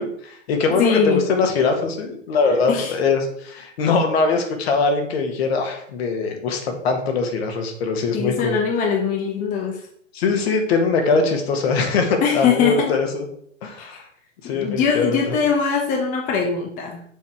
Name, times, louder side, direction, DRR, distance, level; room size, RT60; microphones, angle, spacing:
voice 1, 0.0-8.6 10.1-13.2 13.6-14.0 14.4-15.3, left 4 dB, 50° left, 4 dB, 1.8 m, -22 dB
voice 2, 0.8-1.3 2.7-2.9 8.1-9.8 12.2-12.9 13.8-14.0 14.4-17.0, left 6 dB, 20° left, 1 dB, 0.9 m, -22 dB
7.1 x 4.2 x 4.8 m, 0.66 s
figure-of-eight pair, 115°, 38 cm